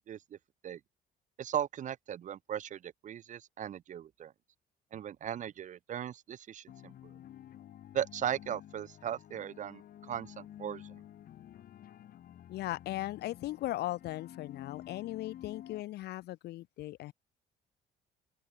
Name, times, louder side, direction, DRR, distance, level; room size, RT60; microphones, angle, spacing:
voice 1, 0.1-0.4 0.6-0.8 1.4-4.3 4.9-7.1 7.9-11.0, right 10 dB, 45° right, 0.9 m, -38 dB
sound 1, 6.7-15.8, left 11 dB, 60° left, 4.9 m, -51 dB
voice 2, 12.5-17.1, left 16 dB, 75° left, 2.7 m, -38 dB
open air
cardioid pair, 110°, 17 cm